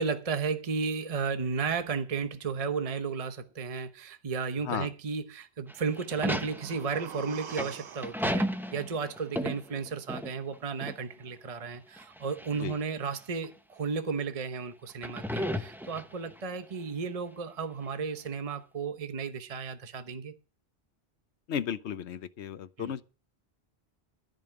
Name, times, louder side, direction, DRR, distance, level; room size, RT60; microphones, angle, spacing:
voice 1, 0.0-20.3 22.8-22.9, right 5 dB, 35° right, 0.9 m, -34 dB
sound 1, 5.7-10.6 10.8-11.0 12.0-12.7 13.4-13.5 14.9-16.4, equal, ahead, 0.7 m, -34 dB
sound 2, 6.0-10.0 10.3-10.4, right 9 dB, 85° right, 1.1 m, -47 dB
voice 2, 21.5-23.0, left 8 dB, 85° left, 1.1 m, -34 dB
14.5 x 5.3 x 8.8 m
omnidirectional pair, 1.1 m